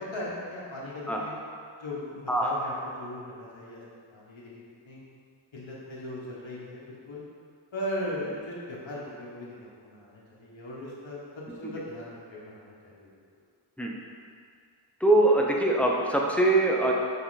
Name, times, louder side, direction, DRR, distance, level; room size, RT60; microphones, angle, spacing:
voice 1, 0.0-1.3 1.8-3.8 4.1-5.0 5.5-7.2 7.7-13.1, left 1 dB, 65° left, -6 dB, 1.6 m, -38 dB
voice 2, 15.0-16.9, right 2 dB, 5° left, -2 dB, 0.8 m, -22 dB
5.7 x 5.3 x 4.2 m, 2.2 s
wide cardioid pair, 75°, 49 cm